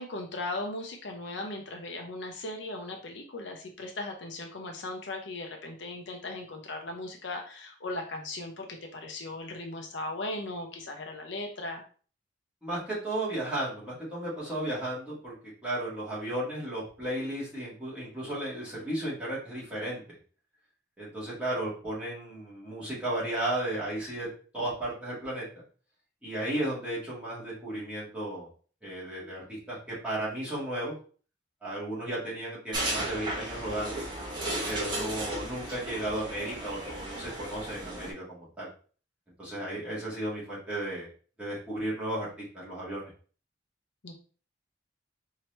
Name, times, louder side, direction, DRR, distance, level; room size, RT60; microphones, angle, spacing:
voice 1, 0.0-11.8 44.0-44.1, left 2 dB, 65° left, 3 dB, 0.7 m, -38 dB
voice 2, 12.6-15.3 15.6-20.0 21.0-24.3 24.5-25.4 26.2-28.5 28.8-30.9 31.6-34.0 34.6-38.7 39.4-41.1 41.4-43.1, right 1 dB, 5° right, -9 dB, 1.7 m, -34 dB
sound 1, 32.7-38.1, right 1 dB, 20° right, 1.1 m, -35 dB
4.4 x 2.8 x 3.2 m, 0.41 s
head